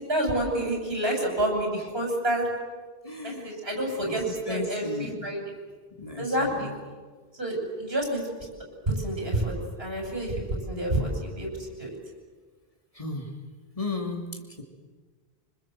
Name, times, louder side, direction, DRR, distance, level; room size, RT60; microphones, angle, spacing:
voice 1, 0.0-2.5 3.2-5.4 6.2-6.7 7.4-8.2 8.9-9.5 9.8-11.9, right 1 dB, 75° right, 0 dB, 7.5 m, -28 dB
voice 2, 3.0-3.5 4.0-5.5 6.0-6.7 12.9-13.4 13.7-14.6, left 3 dB, 35° left, 2 dB, 3.1 m, -35 dB
26.5 x 26.0 x 7.8 m, 1.4 s
omnidirectional pair, 1.0 m